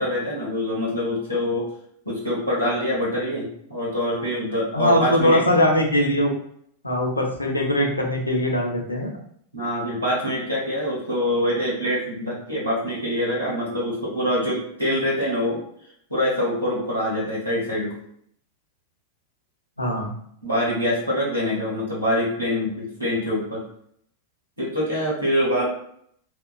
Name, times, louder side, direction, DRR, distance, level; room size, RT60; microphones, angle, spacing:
voice 1, 0.0-1.7 2.0-5.4 9.5-15.6 16.1-18.0 20.4-23.6 24.6-25.6, left 1 dB, 85° right, -6 dB, 1.5 m, -25 dB
voice 2, 4.7-6.3 6.8-9.1 19.8-20.1, left 1 dB, 85° left, 1 dB, 0.6 m, -21 dB
3.6 x 2.3 x 2.3 m, 0.67 s
figure-of-eight pair, 90°, 0 cm